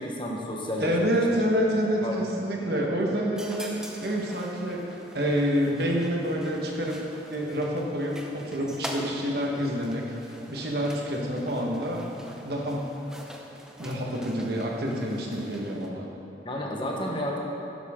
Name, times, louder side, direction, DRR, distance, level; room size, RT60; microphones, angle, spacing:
voice 1, 0.0-1.0 1.3-1.4 2.0-2.2 2.5-2.9 16.4-17.4, equal, 25° left, -1 dB, 1.1 m, -32 dB
voice 2, 0.8-12.1 12.4-12.9 13.8-16.1, equal, 55° right, -1 dB, 1.5 m, -28 dB
sound 1, 3.4-15.9, equal, 5° right, 0.6 m, -44 dB
11.5 x 11.5 x 3.8 m, 2.8 s
head